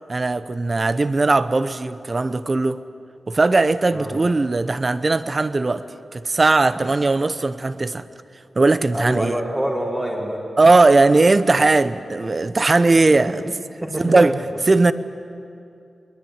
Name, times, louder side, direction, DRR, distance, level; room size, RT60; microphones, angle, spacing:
voice 1, 0.1-2.8 3.3-5.9 6.1-8.0 8.6-9.4 10.6-13.4 14.0-14.9, right 3 dB, 30° right, 13 dB, 0.8 m, -18 dB
voice 2, 8.9-10.4 13.8-14.3, right 1 dB, 15° right, -4 dB, 2.7 m, -26 dB
22.5 x 21.0 x 9.4 m, 2.5 s
wide cardioid pair, 155°, 0 cm